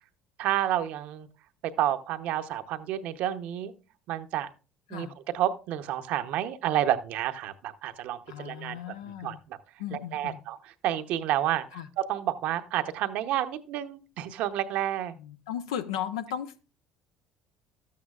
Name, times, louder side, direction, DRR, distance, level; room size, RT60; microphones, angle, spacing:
voice 1, 0.4-1.3 1.6-3.7 4.1-4.5 4.9-5.1 5.3-8.8 9.0-9.3 9.9-10.6 10.8-15.1, right 12 dB, 70° right, 0.8 m, -30 dB
voice 2, 8.3-9.4 9.8-10.4 11.7-11.9 15.2-16.6, left 9 dB, 90° left, 0.7 m, -36 dB
12.5 x 8.5 x 2.4 m
supercardioid pair, 75°, 3 cm